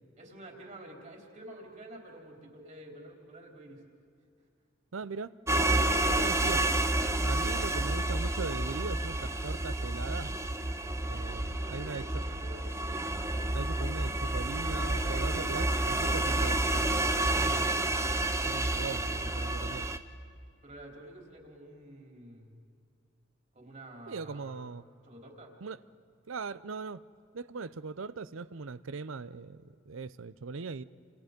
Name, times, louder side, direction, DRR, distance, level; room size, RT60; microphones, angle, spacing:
voice 1, 0.2-3.8 5.8-6.6 7.3-7.9 11.2-12.7 20.6-22.5 23.5-24.7 25.0-25.6, right 1 dB, 35° right, 1 dB, 3.9 m, -49 dB
voice 2, 4.9-6.6 7.2-10.3 11.1-12.0 13.5-17.7 18.5-19.9 24.1-24.8 25.6-25.8 26.3-27.0 27.3-30.8, right 4 dB, 70° right, 17 dB, 0.6 m, -40 dB
sound 1, 5.5-20.0, right 2 dB, 15° right, 0.8 m, -30 dB
29.0 x 28.0 x 5.3 m, 2.4 s
head